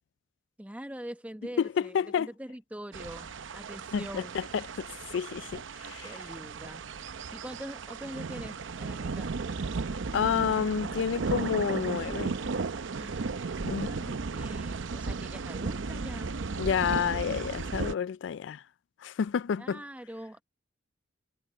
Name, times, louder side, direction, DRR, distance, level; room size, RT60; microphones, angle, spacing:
voice 1, 0.6-4.3 6.0-9.3 12.9-16.3 19.6-20.4, equal, 5° right, 1.0 m, -44 dB
voice 2, 1.6-2.3 3.9-6.1 10.1-12.3 13.6-13.9 16.6-18.6 19.0-19.8, left 7 dB, 65° left, 0.3 m, -30 dB
sound 1, 2.9-17.9, right 4 dB, 75° right, 0.6 m, -35 dB
head